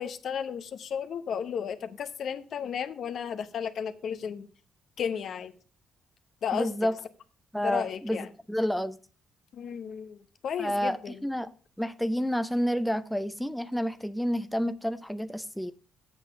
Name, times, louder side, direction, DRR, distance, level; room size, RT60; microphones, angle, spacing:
voice 1, 0.0-4.5 5.0-5.5 6.4-6.7 7.6-8.3 9.5-11.2, left 7 dB, 60° left, 0.8 m, -33 dB
voice 2, 6.5-6.9 7.5-9.0 10.6-15.7, equal, ahead, 0.6 m, -30 dB
8.0 x 6.8 x 6.3 m
cardioid pair, 90°, 0 cm